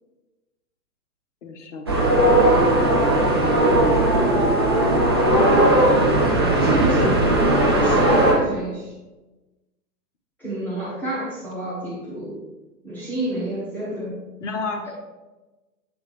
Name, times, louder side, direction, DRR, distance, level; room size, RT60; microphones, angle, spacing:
voice 1, 1.4-2.8 14.4-14.9, left 3 dB, 45° left, 4 dB, 1.0 m, -32 dB
sound 1, 1.9-8.3, right 1 dB, 15° right, 0.4 m, -17 dB
voice 2, 3.9-4.6 5.2-6.0 6.6-7.3 7.7-8.9 10.4-12.4 12.8-14.2 14.8-14.9, right 1 dB, 5° left, -10 dB, 1.7 m, -29 dB
8.9 x 3.5 x 3.4 m, 1.1 s
figure-of-eight pair, 125°, 50 cm